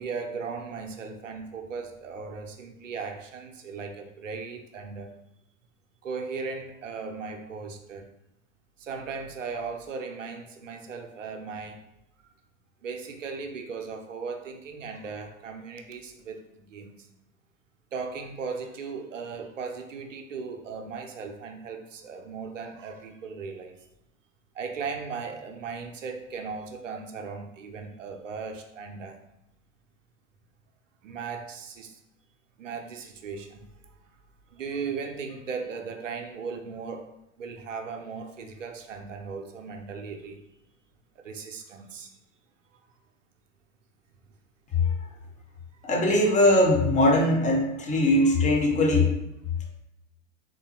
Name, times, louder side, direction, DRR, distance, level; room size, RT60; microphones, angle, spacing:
voice 1, 0.0-5.1 6.0-8.1 8.8-11.8 12.8-17.1 17.9-23.8 24.5-29.2 31.0-32.0 32.6-34.0 34.5-37.1 37.4-40.4 41.2-42.1 42.7-42.9, right 5 dB, 85° right, 4 dB, 0.6 m, -37 dB
voice 2, 45.8-49.2, left 1 dB, 20° left, 0 dB, 0.8 m, -21 dB
3.7 x 2.7 x 2.9 m, 0.85 s
hypercardioid pair, 90°, 37 cm